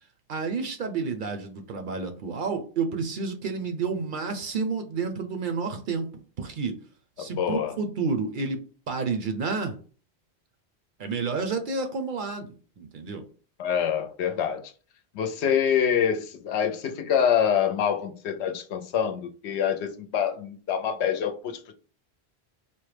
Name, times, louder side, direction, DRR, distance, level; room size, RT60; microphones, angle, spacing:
voice 1, 0.3-6.1 6.4-6.7 7.2-8.6 8.9-9.8 11.0-13.2, right 4 dB, 60° right, 0.6 m, -30 dB
voice 2, 7.4-7.8 13.6-14.6 15.1-21.7, left 8 dB, 85° left, 0.9 m, -26 dB
4.3 x 2.1 x 3.2 m
omnidirectional pair, 1.1 m